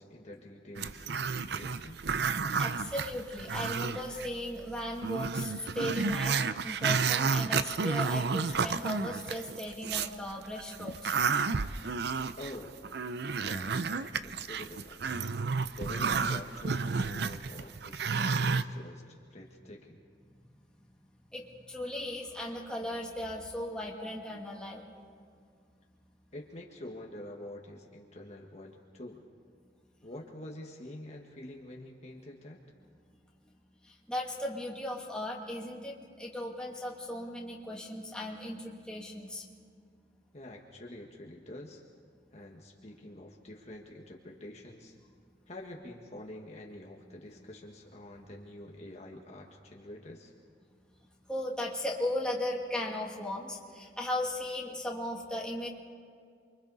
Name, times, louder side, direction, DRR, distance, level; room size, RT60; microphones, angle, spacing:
voice 1, 0.0-2.0 12.4-12.7 13.4-15.0 15.8-20.0 26.3-29.2 30.0-32.6 40.3-41.8 42.3-45.0 45.5-50.3, left 1 dB, 40° left, -1 dB, 1.7 m, -47 dB
Growling, 0.7-4.3 4.6-4.7 5.0-10.1 10.6-18.6, right 5 dB, 65° right, 0.6 m, -31 dB
voice 2, 2.6-6.4 6.6-11.1 21.3-21.4 21.7-24.8 34.1-39.4 51.3-55.7, left 1 dB, 5° left, -3 dB, 2.7 m, -37 dB
29.0 x 24.0 x 4.1 m, 2.1 s
head